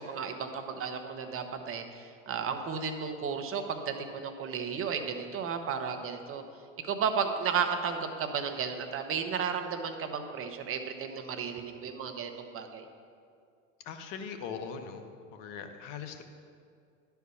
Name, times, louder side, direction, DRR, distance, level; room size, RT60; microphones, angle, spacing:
voice 1, 0.0-6.4 6.8-12.8, right 6 dB, 35° right, 6 dB, 1.0 m, -33 dB
voice 2, 13.8-15.1 15.3-16.2, left 6 dB, 55° left, 7 dB, 1.1 m, -40 dB
11.0 x 4.6 x 7.0 m, 2.3 s
hypercardioid pair, 90°, 38 cm